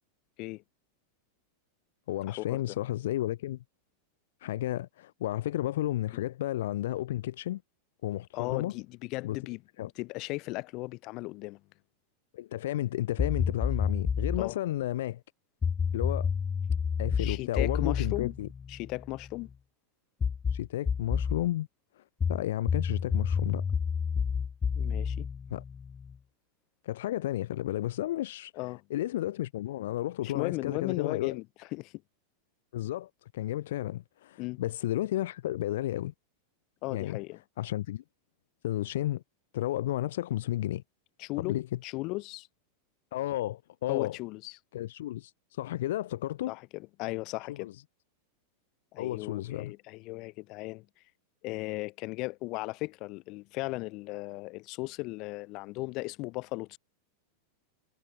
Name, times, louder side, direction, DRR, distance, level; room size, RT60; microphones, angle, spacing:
voice 1, 2.1-3.6 4.4-7.6 8.0-8.7 9.2-9.4 9.8-9.9 12.3-15.2 15.9-16.3 17.0-18.5 20.5-21.7 22.0-22.1 22.3-23.7 25.5-25.6 26.8-28.5 28.9-31.4 32.7-36.1 36.9-37.2 37.6-38.0 38.6-39.2 39.5-40.8 41.4-41.8 43.1-44.2 44.7-46.5 47.6-47.7 49.0-49.7, left 14 dB, 55° left, 2.3 m, -32 dB
voice 2, 8.3-11.6 14.4-14.6 17.2-18.3 18.7-19.5 24.7-25.3 28.5-28.8 30.2-32.0 34.4-34.6 36.8-37.4 41.2-41.5 41.8-42.5 43.9-44.6 46.5-47.7 48.9-50.8 51.4-56.8, left 23 dB, 40° left, 3.1 m, -36 dB
sound 1, 13.2-14.5 15.6-19.3 20.2-21.5 22.2-26.1, left 6 dB, 20° left, 2.4 m, -30 dB
figure-of-eight pair, 90°, 0 cm